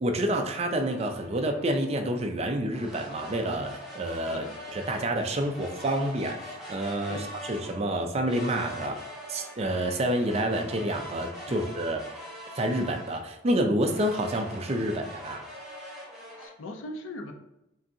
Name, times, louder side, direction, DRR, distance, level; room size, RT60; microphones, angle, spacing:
voice 1, 0.0-4.4 4.7-9.0 9.3-12.2 12.6-15.4, right 1 dB, 30° right, 4 dB, 0.4 m, -28 dB
sound 1, 0.8-2.0 2.7-7.8 8.3-13.3 13.8-16.5, equal, ahead, 1.0 m, -43 dB
voice 2, 16.4-17.3, left 2 dB, 75° left, 4 dB, 0.5 m, -39 dB
5.5 x 2.7 x 2.7 m, 0.88 s
head